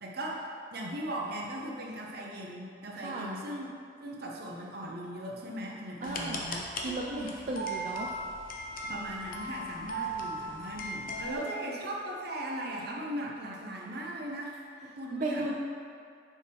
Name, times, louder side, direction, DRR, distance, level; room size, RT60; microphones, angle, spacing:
voice 1, 0.0-3.7 4.0-7.4 8.8-15.4, right 1 dB, 60° right, -2 dB, 0.9 m, -38 dB
sound 1, 6.0-11.4, right 1 dB, 50° left, 0.7 m, -38 dB
voice 2, 6.0-6.5 6.8-8.1 11.3-11.4 15.1-15.5, right 2 dB, 40° right, -3 dB, 0.4 m, -35 dB
6.7 x 4.8 x 3.5 m, 2.3 s
head